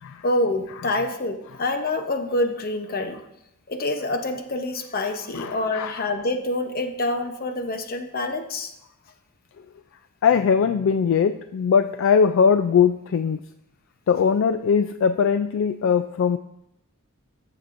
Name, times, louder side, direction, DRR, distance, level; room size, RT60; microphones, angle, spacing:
voice 1, 0.2-3.2 3.7-8.7, left 2 dB, 45° left, 6 dB, 0.8 m, -26 dB
voice 2, 5.3-6.1 10.2-13.4 14.1-16.4, left 6 dB, 60° left, 10 dB, 0.3 m, -20 dB
14.0 x 6.7 x 2.6 m, 0.83 s
head